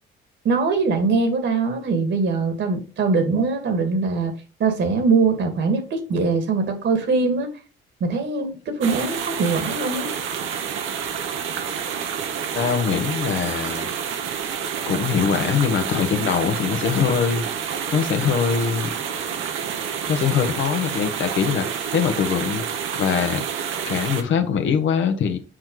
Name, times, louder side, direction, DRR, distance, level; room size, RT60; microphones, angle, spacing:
voice 1, 0.4-4.3 4.6-7.5 8.0-10.1, right 4 dB, 65° right, 2.0 m, -22 dB
sound 1, 8.8-24.2, right 7 dB, 85° right, 1.1 m, -28 dB
voice 2, 12.5-13.9 14.9-17.4 17.9-18.9 20.1-22.6 22.9-23.4 23.9-25.4, left 7 dB, 75° left, 1.1 m, -22 dB
6.3 x 4.7 x 3.9 m
cardioid pair, 90°, 20 cm